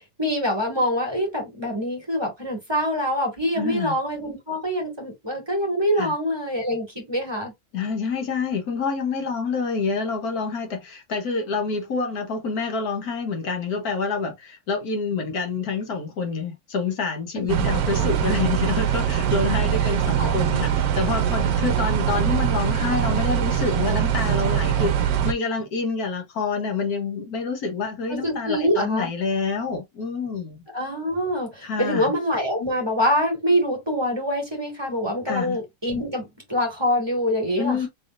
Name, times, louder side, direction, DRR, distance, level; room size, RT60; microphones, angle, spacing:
voice 1, 0.2-7.5 17.4-17.5 18.0-18.1 19.8-20.4 28.1-29.1 30.7-37.9, equal, 15° right, 1.8 m, -25 dB
voice 2, 3.6-3.9 6.0-6.1 7.7-30.6 31.6-32.1 35.3-35.6 37.6-37.9, left 4 dB, 60° left, 1.4 m, -27 dB
sound 1, 17.5-25.3, right 9 dB, 65° right, 1.1 m, -22 dB
4.0 x 3.5 x 2.5 m
omnidirectional pair, 2.0 m